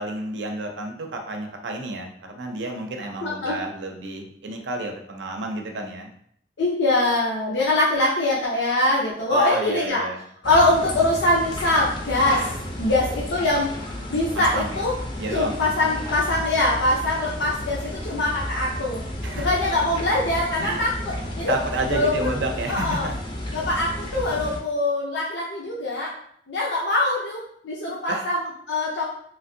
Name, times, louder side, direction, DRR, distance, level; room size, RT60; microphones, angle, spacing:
voice 1, 0.0-6.1 9.3-10.2 14.4-14.8 15.2-15.6 19.2-19.5 20.6-20.9 21.5-23.2 28.1-28.2, right 2 dB, 80° right, 3 dB, 0.5 m, -30 dB
voice 2, 3.2-3.6 6.6-10.0 10.4-12.5 12.8-13.7 14.1-14.9 15.3-19.0 19.3-21.5 21.9-22.3 22.7-23.1 23.5-26.1 26.5-29.0, left 2 dB, 75° left, -5 dB, 0.6 m, -23 dB
sound 1, 10.4-24.6, left 1 dB, 25° left, 0.4 m, -32 dB
3.1 x 2.5 x 2.6 m, 0.66 s
head